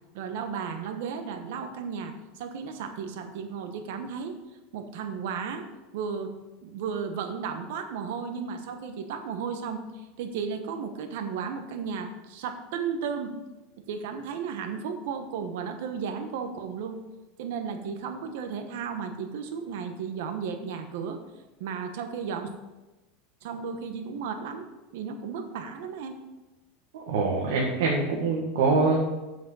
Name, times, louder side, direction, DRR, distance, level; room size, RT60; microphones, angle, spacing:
voice 1, 0.1-4.4 4.7-5.7 5.9-6.3 6.6-13.3 13.9-17.0 17.4-21.2 21.6-22.5 23.4-24.7 24.9-26.2, right 6 dB, 70° right, 7 dB, 1.1 m, -34 dB
voice 2, 26.9-29.0, right 3 dB, 90° right, -2 dB, 1.6 m, -24 dB
7.7 x 6.3 x 5.6 m, 1.1 s
supercardioid pair, 170°, 0 cm